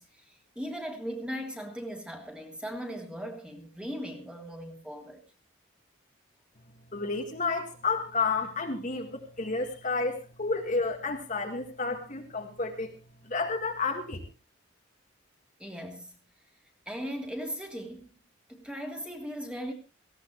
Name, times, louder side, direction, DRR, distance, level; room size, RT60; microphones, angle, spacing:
voice 1, 0.0-5.2 15.6-16.2 16.9-18.1 18.5-19.7, equal, 5° right, 2.9 m, -38 dB
voice 2, 6.9-12.9 13.2-14.3, left 4 dB, 40° left, 1.9 m, -31 dB
18.5 x 16.0 x 3.2 m
head